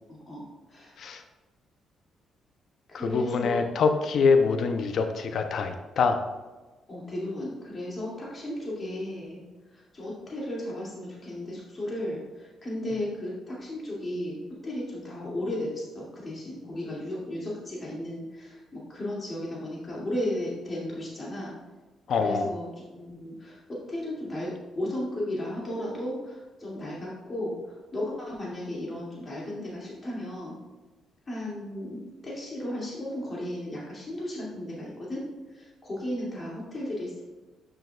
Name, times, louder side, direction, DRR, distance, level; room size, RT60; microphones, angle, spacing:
voice 1, 0.1-0.4 0.7-0.9 2.9-3.6 6.9-9.4 9.7-21.5 22.1-30.6 31.3-32.0 32.2-35.2 35.5-37.2, left 1 dB, 35° left, -5 dB, 2.4 m, -35 dB
voice 2, 2.9-6.2 22.1-22.5, left 5 dB, 65° left, 7 dB, 0.6 m, -24 dB
9.0 x 6.2 x 2.4 m, 1.2 s
cardioid pair, 85°, 0 cm